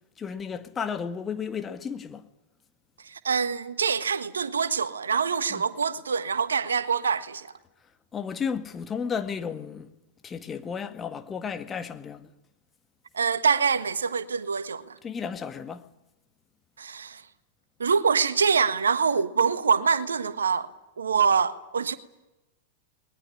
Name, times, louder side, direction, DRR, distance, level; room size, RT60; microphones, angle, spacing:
voice 1, 0.2-2.3 5.5-5.6 8.1-9.9 10.2-12.3 15.0-15.9, left 6 dB, 20° left, 1.9 m, -33 dB
voice 2, 3.1-7.5 13.1-15.0 16.8-17.2 17.8-20.7 21.0-22.0, right 6 dB, 75° right, 1.4 m, -25 dB
21.5 x 21.5 x 9.9 m
figure-of-eight pair, 95°, 0 cm